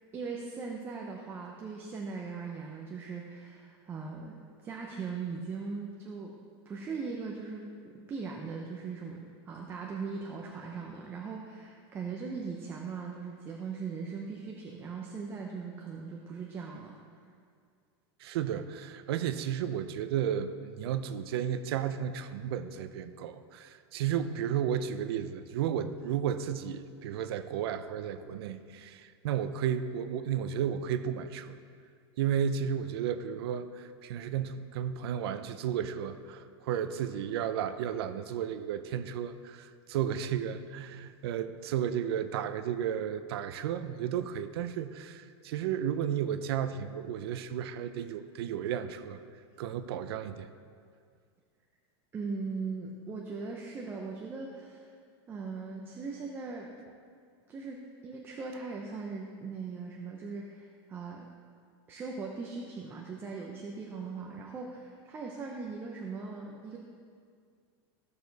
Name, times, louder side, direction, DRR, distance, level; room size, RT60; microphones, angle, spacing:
voice 1, 0.1-4.3 4.6-6.3 6.7-16.9 52.1-54.9 55.3-56.7 57.5-61.3 61.9-66.8, right 4 dB, 15° right, 0 dB, 0.6 m, -39 dB
voice 2, 18.2-31.5 32.2-49.2 49.6-50.5, right 9 dB, 65° right, 11 dB, 0.6 m, -33 dB
14.5 x 6.8 x 4.0 m, 2.1 s
supercardioid pair, 165°, 14 cm